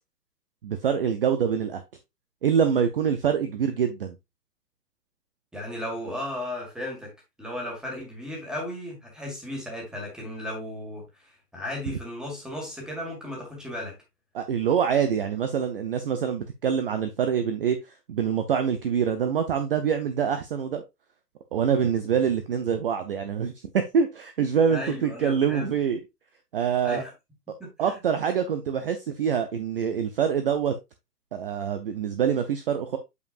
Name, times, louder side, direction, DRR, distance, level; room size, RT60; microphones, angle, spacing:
voice 1, 0.6-1.8 2.4-4.1 14.3-17.8 18.1-20.8 21.5-26.0 26.5-27.0 27.8-30.8 31.3-33.0, right 7 dB, 35° right, 0.6 m, -25 dB
voice 2, 5.5-7.1 7.4-14.0 24.7-25.7 26.8-27.1 27.6-28.0, left 1 dB, ahead, 1.8 m, -35 dB
8.2 x 5.1 x 2.5 m
hypercardioid pair, 145°, 49 cm